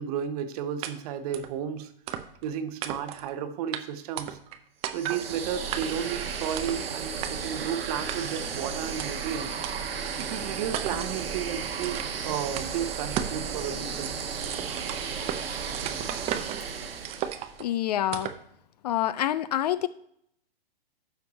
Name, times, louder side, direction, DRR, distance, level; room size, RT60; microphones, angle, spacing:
voice 1, 0.0-1.9 2.4-4.4 4.9-9.5 10.2-14.1, right 8 dB, 40° right, 10 dB, 0.9 m, -33 dB
sound 1, 0.8-0.9 1.3-1.5 2.1-2.5 2.8-3.3 3.7-3.8 4.2-4.6 4.8-5.2 5.7-6.1 6.6-6.8 7.2-7.3 8.1-8.5 9.0-9.1 9.6-9.7 10.2-10.3 10.7-11.1 11.8-12.2 12.6-12.7 13.2-13.4 13.7-15.4 15.7-16.6 17.0-17.6 18.1-18.4, right 11 dB, 20° right, 0.5 m, -34 dB
sound 2, 4.9-17.6, right 6 dB, 75° right, 1.2 m, -34 dB
voice 2, 17.6-18.3 18.8-19.9, left 12 dB, 45° left, 16 dB, 0.4 m, -27 dB
11.5 x 4.6 x 4.0 m, 0.69 s
hypercardioid pair, 125°, 30 cm